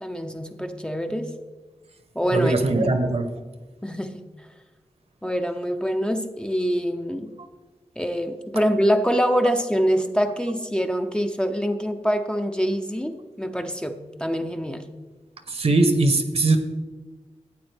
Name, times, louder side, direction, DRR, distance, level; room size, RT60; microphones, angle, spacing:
voice 1, 0.0-1.3 2.2-2.5 2.8-3.0 3.8-4.3 5.2-7.3 8.0-14.9, equal, 10° left, 6 dB, 0.5 m, -25 dB
voice 2, 2.3-3.2 15.5-16.6, right 2 dB, 60° right, 8 dB, 1.0 m, -20 dB
12.5 x 8.6 x 3.4 m, 1.3 s
wide cardioid pair, 100°, 11 cm